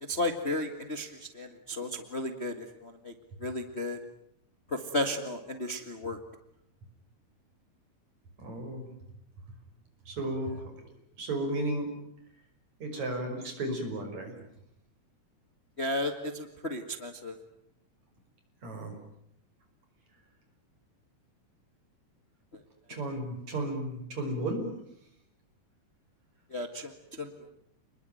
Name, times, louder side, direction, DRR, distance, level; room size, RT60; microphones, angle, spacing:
voice 1, 0.1-3.1 3.4-4.0 4.7-6.2 15.8-17.4 26.5-27.3, left 1 dB, 25° left, 7 dB, 1.6 m, -34 dB
voice 2, 8.4-8.9 10.1-11.9 12.8-14.3 18.6-18.9 22.9-24.7, right 1 dB, 60° right, 5 dB, 7.1 m, -34 dB
29.5 x 21.0 x 9.2 m, 0.74 s
omnidirectional pair, 3.6 m